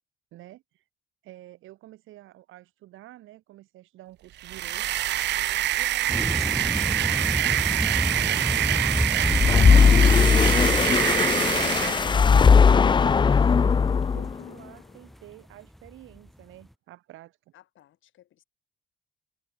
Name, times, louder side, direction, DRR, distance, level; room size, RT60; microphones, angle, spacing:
voice 1, 0.3-0.8 1.2-4.9 5.7-10.8 11.3-17.4, right 15 dB, 90° right, 3.3 m, -48 dB
sound 1, 4.4-12.1, right 13 dB, 60° right, 0.4 m, -25 dB
voice 2, 5.3-5.8 17.5-18.4, left 12 dB, 80° left, 7.6 m, -57 dB
sound 2, 6.1-15.1 15.7-15.9 16.2-16.3, equal, ahead, 0.9 m, -31 dB
sound 3, 9.2-14.4, left 6 dB, 25° left, 0.4 m, -18 dB
cardioid pair, 90°, 20 cm